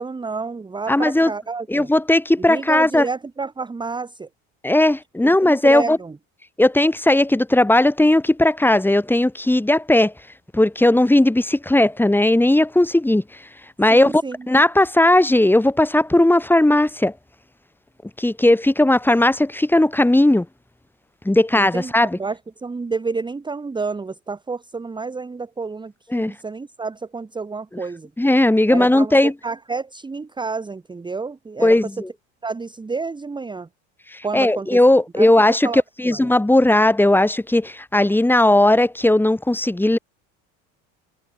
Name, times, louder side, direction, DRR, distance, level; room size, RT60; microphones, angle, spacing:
voice 1, 0.0-1.9 2.5-4.3 5.4-6.1 13.9-14.4 21.6-28.1 28.7-31.7 32.4-33.7 34.2-34.8 35.2-35.3 35.6-36.2, right 4 dB, 15° right, 1.2 m, -29 dB
voice 2, 0.9-1.3 1.7-3.1 4.6-6.0 6.6-10.1 10.5-13.4 13.8-17.1 18.2-20.5 21.2-22.2 26.1-26.3 28.2-29.3 31.6-32.1 34.1-40.0, left 1 dB, 5° left, 2.0 m, -17 dB
supercardioid pair, 95°, 33 cm